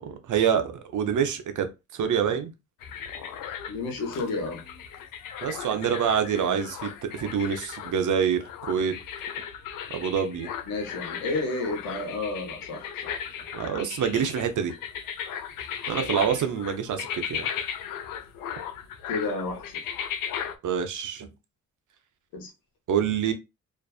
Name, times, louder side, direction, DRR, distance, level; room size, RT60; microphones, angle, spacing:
voice 1, 0.0-2.5 5.4-9.0 9.9-10.5 13.5-14.7 15.9-17.5 20.6-21.3 22.9-23.3, right 7 dB, 60° right, 0.7 m, -26 dB
sound 1, 2.8-20.6, left 8 dB, 70° left, 0.5 m, -36 dB
voice 2, 3.7-4.6 6.4-6.6 10.7-12.9 13.4-13.5 15.9-16.1 19.1-19.6 22.3-22.5, left 3 dB, 90° left, 0.9 m, -31 dB
2.5 x 2.4 x 2.3 m
supercardioid pair, 50°, 34 cm